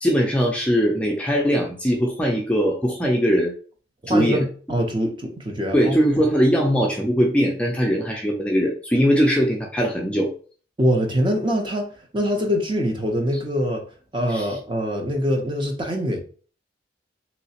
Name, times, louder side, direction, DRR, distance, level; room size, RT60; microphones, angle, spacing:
voice 1, 0.0-3.5 4.1-4.4 5.7-10.3 14.3-14.5, equal, 5° left, 0.5 m, -20 dB
voice 2, 4.0-6.0 10.8-11.9 12.1-13.8 14.1-16.2, equal, 25° right, 0.7 m, -23 dB
3.2 x 2.9 x 2.8 m
head